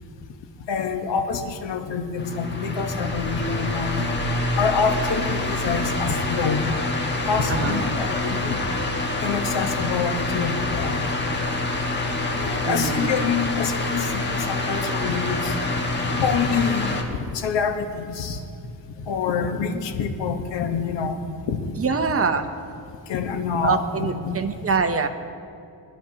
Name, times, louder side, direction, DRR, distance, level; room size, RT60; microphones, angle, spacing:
voice 1, 0.7-4.1 4.6-6.6 7.3-8.6 9.2-11.0 12.3-15.6 16.0-18.4 19.1-21.6 23.1-24.4 24.7-24.8, left 6 dB, 85° left, 6 dB, 1.3 m, -26 dB
sound 1, 2.2-17.0, left 2 dB, 25° left, 1.5 m, -26 dB
voice 2, 12.6-13.2 21.8-22.5 23.6-25.1, right 5 dB, 35° right, 8 dB, 0.8 m, -24 dB
23.5 x 11.5 x 2.9 m, 2.5 s
cardioid pair, 130°, 42 cm